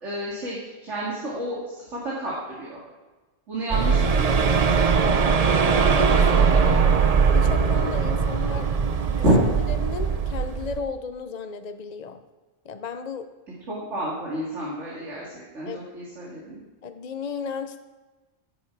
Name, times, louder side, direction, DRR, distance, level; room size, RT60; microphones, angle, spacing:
voice 1, 0.0-2.8 3.5-4.5 9.2-9.5 13.7-16.6, right 1 dB, 80° right, -6 dB, 2.8 m, -28 dB
sound 1, 3.7-10.8, right 5 dB, 40° right, 0.7 m, -20 dB
voice 2, 5.5-7.0 7.3-8.7 9.0-9.3 9.8-12.2 12.6-13.3 15.7-15.8 16.8-17.8, left 6 dB, 45° left, 9 dB, 0.7 m, -34 dB
16.5 x 8.5 x 4.7 m, 1.2 s
omnidirectional pair, 1.2 m